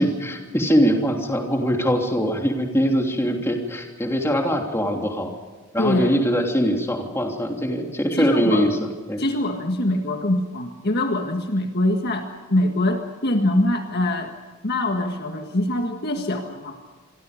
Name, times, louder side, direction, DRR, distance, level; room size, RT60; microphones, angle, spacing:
voice 1, 0.0-5.3 5.7-9.2, equal, 10° left, 2 dB, 3.1 m, -22 dB
voice 2, 5.8-6.1 8.1-8.7 9.2-14.3 14.6-16.8, left 1 dB, 45° left, 4 dB, 1.8 m, -23 dB
27.5 x 23.0 x 5.2 m, 1.3 s
head